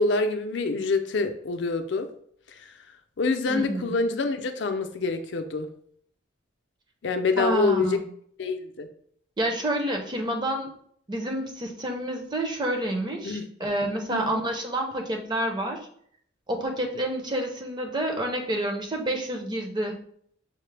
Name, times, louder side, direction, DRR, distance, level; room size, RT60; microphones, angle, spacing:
voice 1, 0.0-2.1 2.5-2.7 3.2-5.7 7.0-8.0 8.4-8.9 13.2-13.5 14.1-14.4, left 3 dB, 65° left, 7 dB, 0.4 m, -26 dB
voice 2, 3.5-3.9 7.4-8.0 9.4-10.7 11.1-15.9 16.5-20.0, right 1 dB, 20° right, 2 dB, 0.5 m, -29 dB
5.6 x 2.0 x 3.2 m, 0.64 s
head